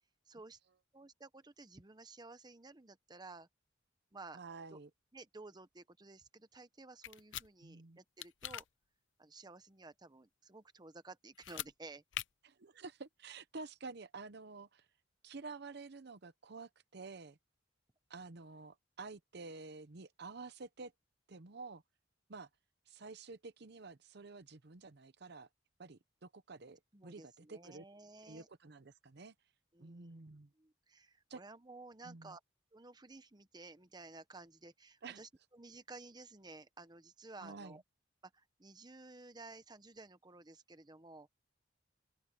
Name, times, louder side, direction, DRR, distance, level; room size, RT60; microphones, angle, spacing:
voice 1, 0.3-0.6 0.9-3.5 4.1-4.4 4.7-4.8 5.1-8.7 9.2-12.0 26.9-28.5 29.7-30.2 30.6-32.4 32.7-37.8 38.2-41.3, right 3 dB, 20° right, 1.0 m, -54 dB
voice 2, 4.3-4.9 7.6-8.0 12.4-14.9 15.2-17.4 18.1-20.9 21.3-21.8 22.3-22.5 22.9-25.5 25.8-27.8 28.2-29.3 29.8-30.5 31.3-31.4 32.0-32.4 35.0-35.2 37.4-37.8, right 3 dB, 60° right, 0.8 m, -50 dB
sound 1, 7.0-7.5 8.2-8.6 11.3-11.7 12.1-12.2, left 12 dB, 80° left, 0.6 m, -42 dB
open air
head